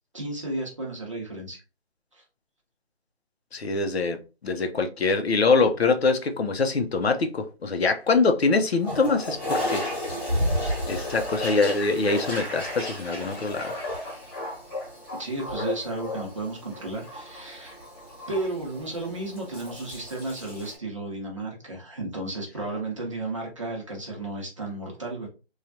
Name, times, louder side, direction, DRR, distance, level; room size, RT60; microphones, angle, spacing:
voice 1, 0.1-1.6 2.1-2.2 15.2-17.8 18.3-25.3, right 2 dB, 30° right, 0.7 m, -33 dB
voice 2, 3.5-9.8 10.9-13.7, left 4 dB, 75° left, 0.6 m, -24 dB
Toilet flush, 8.8-20.8, left 1 dB, 20° left, 1.2 m, -32 dB
3.2 x 2.3 x 2.6 m
figure-of-eight pair, 165°, 32 cm